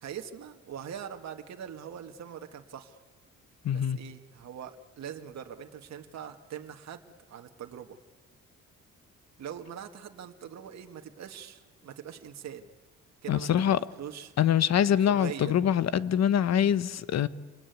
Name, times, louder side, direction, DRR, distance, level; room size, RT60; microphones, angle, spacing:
voice 1, 0.0-3.0 3.7-7.0 7.3-8.0 9.4-12.7 13.2-14.3 14.9-15.5, right 8 dB, 60° right, 1.9 m, -42 dB
voice 2, 3.6-4.0 13.3-13.8 14.4-17.3, left 9 dB, 60° left, 1.1 m, -24 dB
28.0 x 21.0 x 9.4 m
cardioid pair, 90°, 30 cm